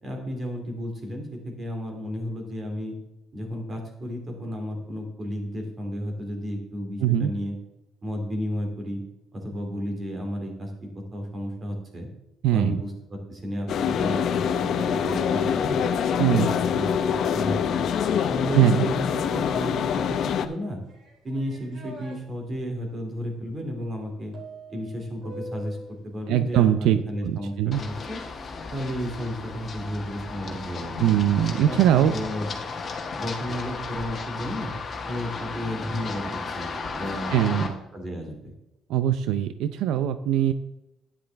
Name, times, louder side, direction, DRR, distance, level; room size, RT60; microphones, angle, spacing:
voice 1, 0.0-2.9 3.3-7.6 8.0-9.0 9.3-12.1 12.5-15.8 16.3-17.8 18.3-20.8 21.2-24.3 24.7-28.2 28.7-31.0 31.5-32.5 33.2-34.7 35.1-38.5, equal, 25° right, 2 dB, 2.6 m, -33 dB
voice 2, 7.0-7.3 12.4-12.8 16.2-16.5 18.5-18.9 26.3-27.8 31.0-32.1 37.3-37.7 38.9-40.5, right 11 dB, 85° right, 11 dB, 0.5 m, -21 dB
sound 1, 13.7-20.5, left 7 dB, 55° left, 0.7 m, -25 dB
sound 2, 20.9-22.2 24.3-26.0, right 1 dB, 55° right, 3.1 m, -42 dB
Run, 27.7-37.7, left 4 dB, 30° left, 1.5 m, -35 dB
11.5 x 10.0 x 3.5 m, 0.91 s
cardioid pair, 160°, 0 cm